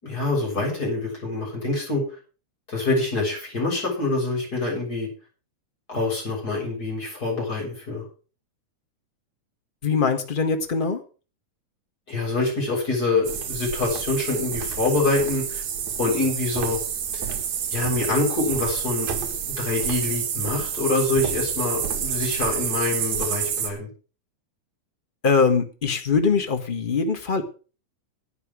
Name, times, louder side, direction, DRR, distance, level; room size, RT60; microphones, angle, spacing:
voice 1, 0.0-2.0 2.7-5.1 5.9-8.0 12.1-15.6 16.0-16.8 17.1-17.3 17.7-19.1 19.6-23.9, left 2 dB, 25° left, -2 dB, 7.7 m, -25 dB
voice 2, 9.8-11.0 25.2-27.4, left 5 dB, 50° left, 5 dB, 0.6 m, -22 dB
sound 1, 13.2-23.7, right 8 dB, 65° right, 3.1 m, -28 dB
12.5 x 9.4 x 6.2 m, 0.36 s
omnidirectional pair, 3.7 m